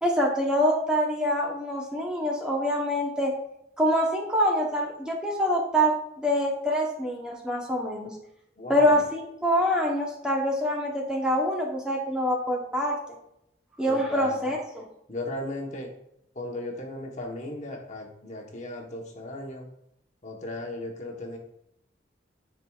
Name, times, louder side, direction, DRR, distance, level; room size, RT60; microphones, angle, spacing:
voice 1, 0.0-3.3 3.8-8.1 8.7-12.9 13.8-14.8, equal, 5° right, -2 dB, 0.9 m, -25 dB
voice 2, 8.6-9.0 13.9-14.4 15.1-15.9 16.3-19.7 20.2-21.4, left 1 dB, 40° left, 1 dB, 1.1 m, -36 dB
10.0 x 4.6 x 2.4 m, 0.77 s
head